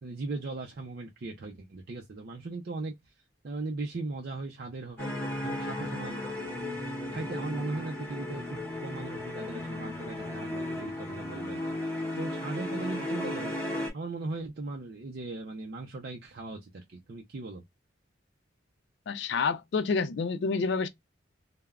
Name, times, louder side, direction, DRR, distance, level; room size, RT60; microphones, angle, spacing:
voice 1, 0.0-2.9 3.4-5.1 5.4-6.2 7.1-17.6, right 3 dB, 55° right, 0.5 m, -38 dB
sound 1, 5.0-13.9, left 1 dB, 10° left, 1.2 m, -35 dB
voice 2, 19.1-20.9, left 4 dB, 60° left, 0.4 m, -28 dB
3.4 x 2.1 x 2.3 m
head